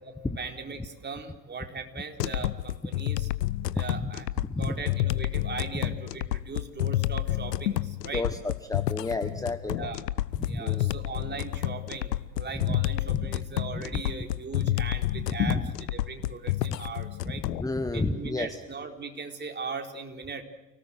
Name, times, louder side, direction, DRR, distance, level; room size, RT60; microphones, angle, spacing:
voice 1, 0.0-3.3 3.7-4.3 4.6-8.3 9.8-10.0 10.5-15.6 15.9-17.4 17.9-20.4, right 4 dB, 20° right, 3 dB, 4.1 m, -39 dB
sound 1, 2.2-17.6, left 14 dB, 75° left, 1.0 m, -29 dB
voice 2, 4.4-4.7 8.1-9.8 10.5-10.9 13.8-13.9 15.5-15.6 17.6-18.6, left 2 dB, 5° left, 10 dB, 1.3 m, -31 dB
29.5 x 18.5 x 8.0 m, 1.1 s
hypercardioid pair, 80°, 49 cm